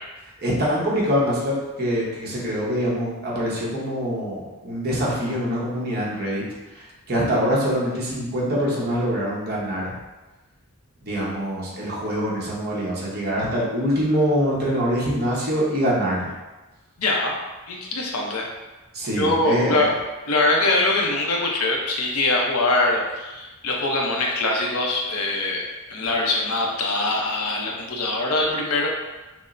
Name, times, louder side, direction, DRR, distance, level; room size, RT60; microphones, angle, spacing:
voice 1, 0.4-6.4 6.8-9.9 11.0-16.3 18.9-19.9, equal, 45° right, -6 dB, 1.0 m, -24 dB
voice 2, 17.0-17.4 17.7-18.4 19.1-20.0 20.3-25.6 25.9-28.9, left 2 dB, 80° left, -1 dB, 0.7 m, -23 dB
6.1 x 2.0 x 2.6 m, 1.1 s
head